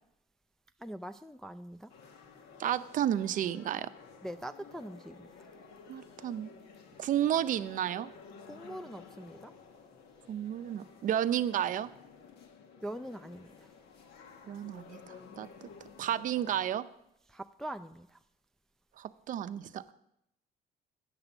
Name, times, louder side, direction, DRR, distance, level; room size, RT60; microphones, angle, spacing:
voice 1, 0.8-1.9 4.2-5.3 8.5-9.5 12.8-13.5 17.3-18.2, right 1 dB, 5° left, 0.3 m, -42 dB
sound 1, 1.9-16.6, left 5 dB, 75° left, 1.2 m, -53 dB
voice 2, 2.6-3.9 5.9-6.5 7.0-8.1 10.3-11.9 14.5-15.5 16.0-16.9 19.0-19.9, right 10 dB, 50° right, 0.5 m, -32 dB
8.9 x 6.7 x 7.0 m
cardioid pair, 110°, 17 cm